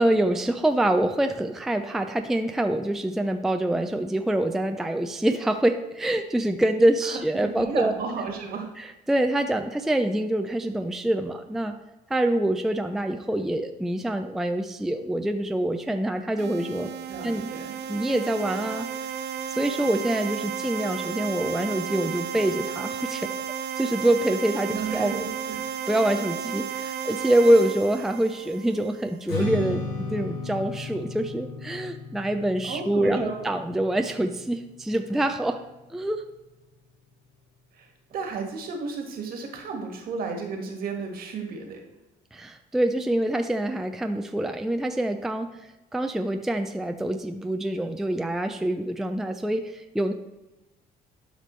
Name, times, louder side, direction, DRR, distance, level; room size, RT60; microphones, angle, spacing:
voice 1, 0.0-7.9 8.8-11.7 12.1-16.9 17.2-17.5 17.9-18.9 19.5-23.3 23.8-25.1 25.9-35.6 35.9-36.2 42.3-45.5 45.9-50.1, right 1 dB, ahead, 6 dB, 0.4 m, -25 dB
voice 2, 7.0-8.7 17.1-17.8 24.7-25.6 32.7-33.4 37.7-41.8, right 4 dB, 60° right, 3 dB, 1.6 m, -33 dB
sound 1, 16.4-29.1, right 8 dB, 75° right, 0.5 m, -33 dB
Strum, 29.3-35.6, left 3 dB, 65° left, 3.0 m, -35 dB
11.5 x 5.1 x 3.2 m, 1.0 s
cardioid pair, 110°, 17 cm